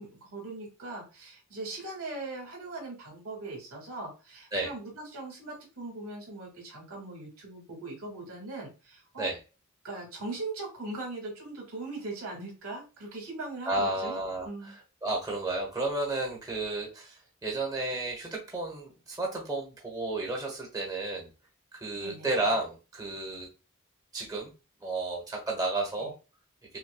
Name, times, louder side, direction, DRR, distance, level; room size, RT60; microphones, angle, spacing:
voice 1, 0.0-9.3 9.8-14.8 21.9-22.3 26.0-26.1, right 2 dB, 85° right, -1 dB, 1.9 m, -40 dB
voice 2, 13.7-14.8 15.0-21.3 21.7-23.5 24.1-24.5 24.8-26.1, right 2 dB, 15° right, -2 dB, 1.1 m, -32 dB
5.9 x 2.2 x 2.2 m, 0.30 s
head